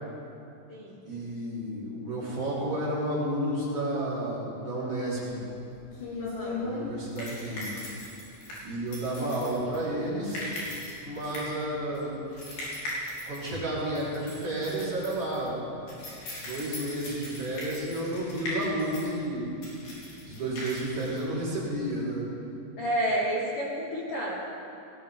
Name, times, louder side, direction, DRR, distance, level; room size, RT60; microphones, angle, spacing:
voice 1, 1.0-5.4 6.5-7.8 8.6-10.5 11.0-12.2 13.3-15.6 16.4-19.5 20.2-22.2, right 1 dB, 30° right, -9 dB, 4.7 m, -31 dB
sound 1, 5.2-22.0, left 1 dB, 55° left, 5.1 m, -39 dB
voice 2, 6.2-6.6 22.8-24.4, equal, 85° left, -4 dB, 1.2 m, -30 dB
19.0 x 16.5 x 3.7 m, 2.8 s
omnidirectional pair, 5.3 m